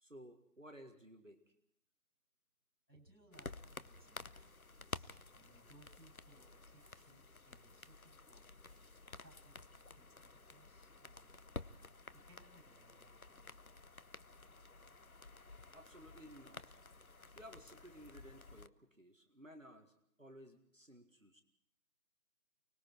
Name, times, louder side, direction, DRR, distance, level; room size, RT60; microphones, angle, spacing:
voice 1, 0.0-1.5 15.7-16.8 17.3-21.4, equal, 50° right, 5 dB, 1.9 m, -57 dB
voice 2, 2.9-8.7 9.2-9.6 9.9-10.1 10.5-11.5 12.1-13.6, right 1 dB, 70° right, 4 dB, 7.2 m, -66 dB
sound 1, 3.3-18.7, left 3 dB, 60° left, 0.8 m, -53 dB
sound 2, 4.3-5.1 5.8-6.1 6.8-7.1 7.8-8.0 8.7-9.1 9.8-9.9, equal, 20° right, 4.6 m, -76 dB
29.5 x 20.5 x 4.6 m, 0.70 s
figure-of-eight pair, 175°, 49 cm